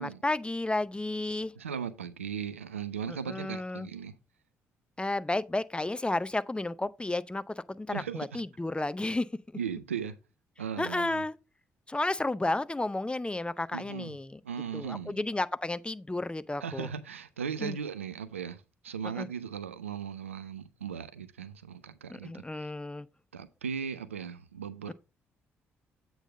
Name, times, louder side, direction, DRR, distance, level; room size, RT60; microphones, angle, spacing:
voice 1, 0.0-1.5 3.1-3.9 5.0-9.3 10.8-11.4 11.9-14.4 14.7-16.9 17.6-17.8 19.2-19.3 22.1-23.1, left 2 dB, 15° left, 0.5 m, -32 dB
voice 2, 1.6-4.2 7.9-8.4 9.5-10.2 10.6-11.2 13.7-14.2 14.4-15.2 16.6-22.7 23.3-24.9, right 7 dB, 90° right, 0.4 m, -37 dB
8.1 x 4.0 x 4.9 m
figure-of-eight pair, 40°, 7 cm